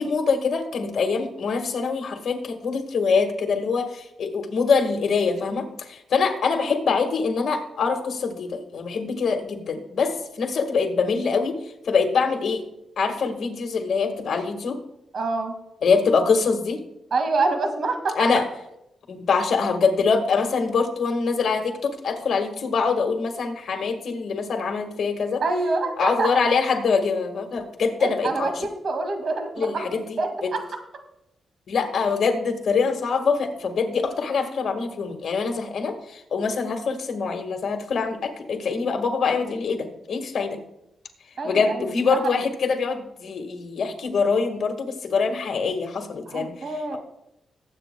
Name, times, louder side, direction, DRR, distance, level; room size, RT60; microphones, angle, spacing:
voice 1, 0.0-11.6 11.9-12.6 13.0-14.8 15.8-16.8 18.1-18.5 19.1-25.4 26.0-28.5 29.6-30.0 30.4-30.5 31.7-40.6 41.4-46.5, left 5 dB, 65° left, 5 dB, 1.7 m, -24 dB
voice 2, 15.1-15.6 17.1-18.2 25.4-26.3 28.0-29.9 30.2-30.6 41.4-42.4 46.3-47.0, right 3 dB, 60° right, 5 dB, 2.1 m, -26 dB
21.0 x 8.6 x 2.3 m, 0.83 s
cardioid pair, 115°, 0 cm